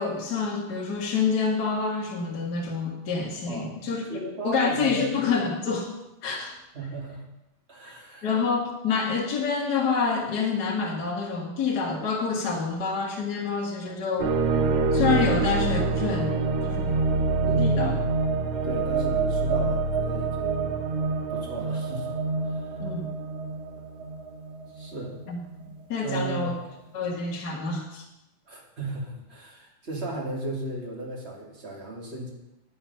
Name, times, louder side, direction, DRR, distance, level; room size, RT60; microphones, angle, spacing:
voice 1, 0.0-4.2 4.4-5.9 6.2-6.6 8.2-14.3 14.9-16.3 16.6-16.9 17.4-18.0 22.8-23.1 25.3-25.4 25.9-26.5 26.9-28.0, left 5 dB, 40° left, -2 dB, 1.5 m, -27 dB
voice 2, 3.5-5.1 6.7-7.2 7.7-8.3 17.7-18.1 18.6-20.8 21.3-22.1 22.5-22.7 24.7-25.2 26.0-26.6 28.5-32.3, right 2 dB, 20° right, -2 dB, 2.3 m, -35 dB
sound 1, 14.2-25.2, right 3 dB, 70° right, 1.5 m, -26 dB
10.5 x 9.0 x 5.6 m, 0.91 s
omnidirectional pair, 3.8 m